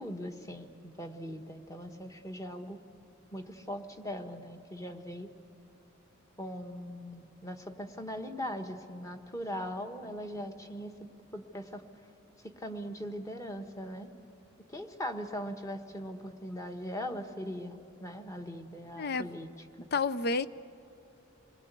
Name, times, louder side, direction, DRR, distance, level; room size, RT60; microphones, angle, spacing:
voice 1, 0.0-2.8 3.3-5.3 6.4-11.8 12.4-14.1 14.7-19.5 19.8-19.9, equal, 15° left, 6 dB, 1.4 m, -40 dB
voice 2, 19.9-20.5, left 4 dB, 50° left, 15 dB, 0.6 m, -29 dB
27.5 x 20.5 x 8.3 m, 3.0 s
head